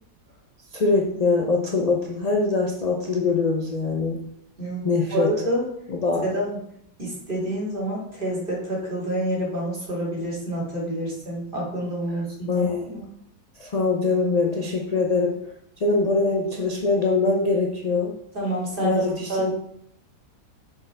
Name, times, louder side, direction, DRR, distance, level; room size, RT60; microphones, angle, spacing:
voice 1, 0.7-4.2 4.8-5.3 5.9-6.3 12.5-12.9 13.6-15.4 15.8-18.2 18.8-19.5, left 3 dB, 50° left, 0 dB, 0.4 m, -23 dB
voice 2, 4.6-5.7 6.2-6.6 7.0-13.0 18.3-19.0 19.3-19.5, right 1 dB, 30° right, -5 dB, 2.8 m, -28 dB
7.1 x 6.6 x 3.4 m, 0.73 s
omnidirectional pair, 1.8 m